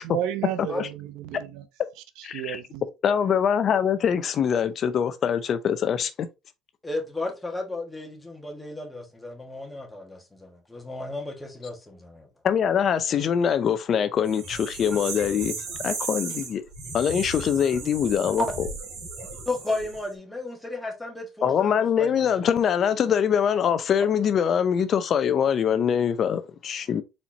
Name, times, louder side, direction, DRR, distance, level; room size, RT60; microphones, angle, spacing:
voice 1, 0.0-1.6 2.2-2.8, right 11 dB, 80° right, 0.6 m, -32 dB
voice 2, 2.2-2.6 3.0-6.1 12.4-15.5 15.8-16.6 16.9-18.4 21.4-27.0, left 8 dB, 45° left, 0.5 m, -23 dB
voice 3, 6.8-12.3 18.4-18.5 19.5-22.2, left 2 dB, 10° left, 1.5 m, -33 dB
sound 1, 14.3-20.1, right 3 dB, 65° right, 2.5 m, -35 dB
4.3 x 4.3 x 2.7 m
cardioid pair, 110°, 0 cm